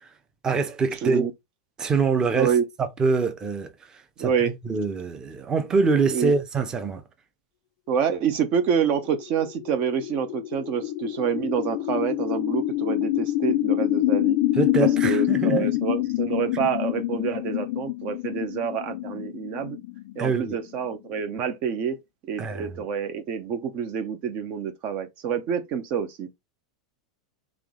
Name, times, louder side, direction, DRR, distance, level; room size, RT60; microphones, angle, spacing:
voice 1, 0.4-1.2 1.8-2.5 2.8-3.7 4.2-7.0 14.6-15.7 16.5-16.7 20.2-20.6 22.4-22.7, right 4 dB, 25° right, 0.8 m, -24 dB
voice 2, 4.2-4.6 6.1-6.3 7.9-14.4 14.8-19.8 20.2-22.0 22.3-26.3, right 7 dB, 50° right, 0.7 m, -27 dB
sound 1, 9.0-21.1, left 15 dB, 60° left, 0.4 m, -26 dB
3.6 x 3.0 x 3.7 m
hypercardioid pair, 115°, 3 cm